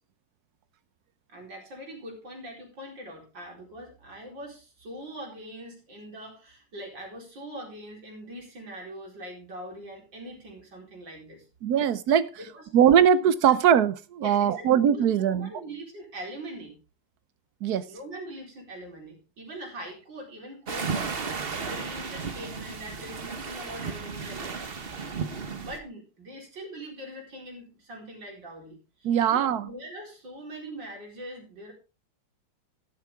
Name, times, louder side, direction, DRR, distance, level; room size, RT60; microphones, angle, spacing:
voice 1, 1.3-11.4 12.4-12.7 13.5-13.6 14.2-16.8 17.9-24.8 25.6-31.7, right 1 dB, 85° right, 5.2 m, -42 dB
voice 2, 11.6-12.3 12.7-15.5 17.6-17.8 29.0-29.7, right 9 dB, 65° right, 1.3 m, -21 dB
sound 1, 20.7-25.8, right 5 dB, 35° right, 1.3 m, -34 dB
12.5 x 12.5 x 3.6 m
omnidirectional pair, 2.0 m